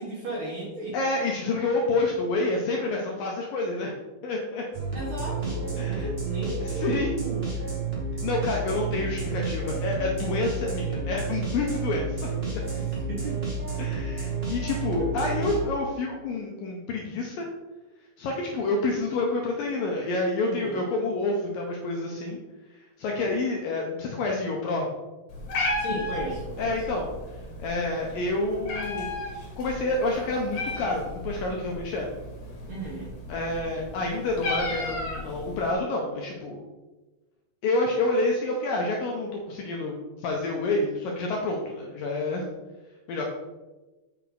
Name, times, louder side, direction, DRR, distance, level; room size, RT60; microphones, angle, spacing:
voice 1, 0.0-1.0 4.9-7.5 12.6-13.4 15.0-15.1 20.4-20.9 25.8-26.8 32.7-33.1, right 1 dB, 60° right, -5 dB, 2.0 m, -35 dB
voice 2, 0.9-3.9 4.2-4.6 5.8-6.1 6.6-7.1 8.2-12.2 13.8-17.5 18.2-22.4 23.0-24.9 26.6-27.1 27.6-29.1 29.6-32.1 33.3-36.6 37.6-42.4 43.1-43.3, left 2 dB, 75° left, -1 dB, 2.1 m, -28 dB
sound 1, 4.7-15.6, right 4 dB, 85° right, 0.5 m, -31 dB
Meow, 25.3-35.7, left 2 dB, 60° left, 2.4 m, -34 dB
7.8 x 5.7 x 4.0 m, 1.1 s
omnidirectional pair, 4.9 m